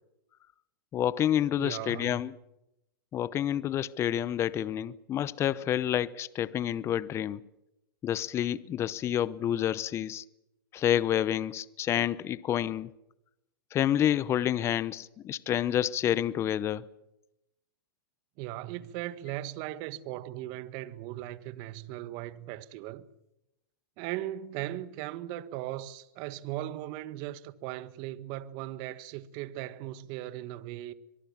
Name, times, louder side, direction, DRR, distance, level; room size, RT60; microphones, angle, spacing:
voice 1, 0.9-2.3 3.1-7.4 8.0-10.2 10.7-12.9 13.7-16.9, left 11 dB, 25° left, 0.8 m, -29 dB
voice 2, 1.6-2.2 18.4-23.1 24.0-30.9, right 14 dB, 45° right, 1.5 m, -38 dB
23.5 x 23.0 x 7.3 m
hypercardioid pair, 125°, 11 cm